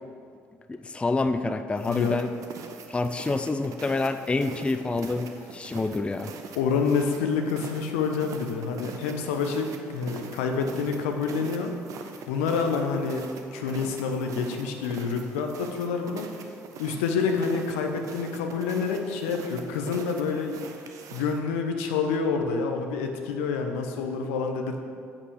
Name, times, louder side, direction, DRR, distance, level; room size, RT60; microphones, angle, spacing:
voice 1, 0.7-2.3 2.9-6.3, left 3 dB, 15° left, 9 dB, 0.4 m, -27 dB
sound 1, 1.8-21.4, right 5 dB, 50° right, 0.8 m, -43 dB
voice 2, 1.9-2.2 6.6-11.7 12.3-24.8, left 5 dB, 70° left, 4 dB, 0.9 m, -28 dB
8.3 x 5.9 x 6.4 m, 2.3 s
figure-of-eight pair, 50°, 7 cm